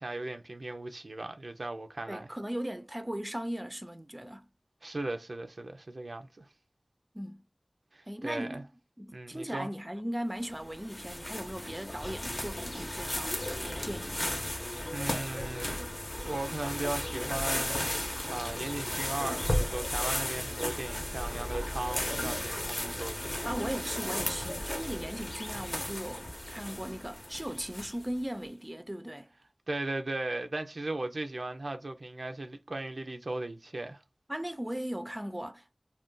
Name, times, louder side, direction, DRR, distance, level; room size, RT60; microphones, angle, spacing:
voice 1, 0.0-2.3 4.8-6.5 7.9-8.6 9.1-9.7 14.9-15.8 16.2-23.4 29.7-34.0, right 2 dB, 90° right, 0.4 m, -37 dB
voice 2, 2.1-4.5 7.1-7.4 8.1-8.7 9.0-14.3 23.4-29.3 34.3-35.7, equal, 20° right, 0.4 m, -38 dB
sound 1, 10.4-28.2, left 1 dB, 45° left, 0.8 m, -35 dB
2.4 x 2.2 x 3.6 m
wide cardioid pair, 45°, 0 cm